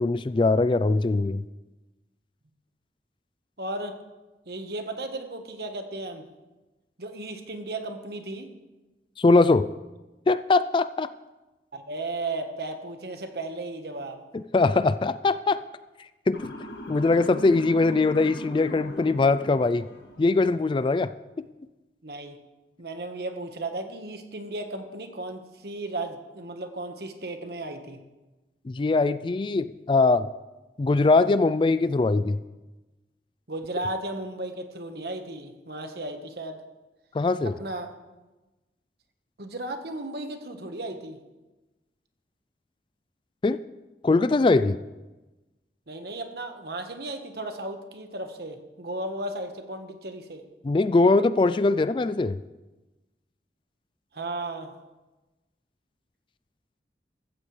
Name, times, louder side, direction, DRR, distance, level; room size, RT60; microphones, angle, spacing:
voice 1, 0.0-1.4 9.2-9.7 10.3-11.1 14.3-15.6 16.3-16.5 16.9-19.9 20.2-21.1 28.7-30.3 30.8-32.4 37.1-37.6 43.4-43.6 44.0-44.8 50.6-52.4, left 3 dB, 30° left, 14 dB, 0.3 m, -21 dB
voice 2, 3.6-4.0 4.5-6.2 7.0-8.5 11.7-14.2 22.0-22.4 22.8-28.0 33.5-36.6 37.4-37.9 39.4-41.2 45.9-50.4 54.1-54.7, right 2 dB, 60° right, 6 dB, 1.3 m, -35 dB
Motor vehicle (road) / Siren, 16.3-20.5, equal, 75° left, 1.6 m, -40 dB
15.0 x 14.0 x 3.3 m, 1.1 s
head